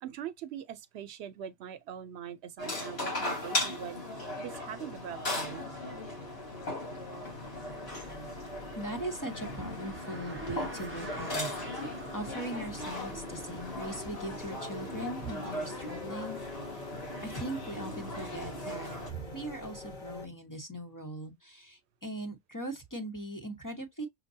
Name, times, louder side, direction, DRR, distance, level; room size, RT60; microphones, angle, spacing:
voice 1, 0.0-5.7, right 9 dB, 85° right, 0.9 m, -42 dB
sound 1, 2.6-19.1, left 1 dB, 75° left, 2.2 m, -38 dB
sound 2, 4.1-20.3, left 1 dB, 50° left, 1.3 m, -47 dB
Car, 7.2-15.8, right 1 dB, 15° right, 0.6 m, -50 dB
voice 2, 8.7-11.8 12.1-16.9 17.2-24.1, right 1 dB, 20° left, 0.9 m, -40 dB
6.4 x 2.2 x 2.6 m
omnidirectional pair, 1.1 m